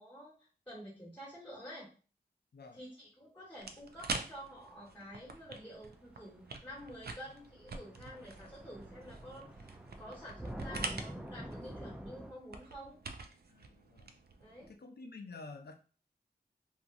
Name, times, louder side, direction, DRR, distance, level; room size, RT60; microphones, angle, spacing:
voice 1, 0.0-1.9 2.7-9.7 10.0-13.0 14.4-14.7, equal, 10° left, -6 dB, 1.2 m, -49 dB
sound 1, 3.6-14.7, right 3 dB, 70° right, 0.4 m, -46 dB
sound 2, 7.4-7.5 7.7-12.3, equal, 5° right, 0.4 m, -46 dB
voice 2, 13.5-14.1 14.6-15.8, left 3 dB, 75° left, 4 dB, 0.5 m, -50 dB
2.9 x 2.4 x 2.5 m, 0.37 s
wide cardioid pair, 55°, 17 cm